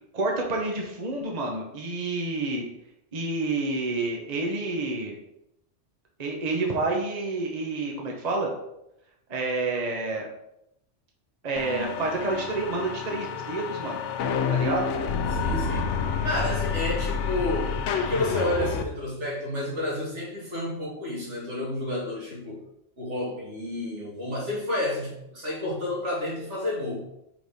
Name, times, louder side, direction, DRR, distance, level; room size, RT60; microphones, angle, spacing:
voice 1, 0.1-2.7 3.1-5.1 6.2-8.5 9.3-10.3 11.4-14.0 14.5-14.9, right 3 dB, 35° right, 0 dB, 1.0 m, -29 dB
sound 1, 11.6-18.8, left 6 dB, 80° left, 0.9 m, -28 dB
voice 2, 15.3-15.9 16.2-22.6 23.0-27.0, left 1 dB, 75° right, -5 dB, 2.4 m, -30 dB
5.0 x 4.0 x 5.3 m, 0.82 s
omnidirectional pair, 1.2 m